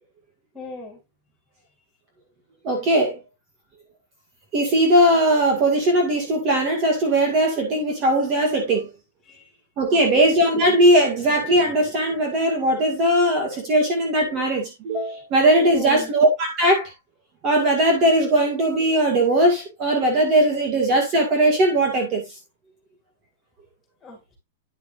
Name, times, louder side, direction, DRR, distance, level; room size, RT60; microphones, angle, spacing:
voice 1, 0.5-1.0 9.2-9.5 9.9-10.3 15.7-16.1 24.0-24.4, left 2 dB, 10° left, 3.7 m, -37 dB
voice 2, 2.6-3.2 4.5-8.9 9.8-16.9 17.4-22.2, right 1 dB, 30° right, 2.0 m, -19 dB
9.9 x 5.9 x 2.6 m
supercardioid pair, 165°, 0 cm